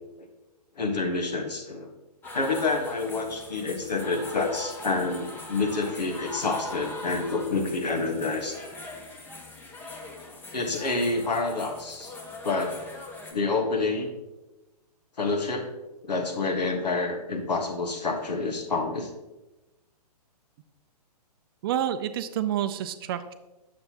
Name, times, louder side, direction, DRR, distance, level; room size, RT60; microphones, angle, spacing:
voice 1, 0.8-1.9 2.3-8.6 10.5-12.1 12.4-12.8 13.3-14.1 15.2-15.7 16.0-19.1, left 3 dB, 85° left, 3 dB, 1.4 m, -28 dB
sound 1, 2.2-13.3, left 2 dB, 10° left, 0.7 m, -42 dB
voice 2, 21.6-23.3, right 10 dB, 35° right, 11 dB, 0.4 m, -28 dB
7.8 x 6.8 x 2.9 m, 1.0 s
hypercardioid pair, 135°, 21 cm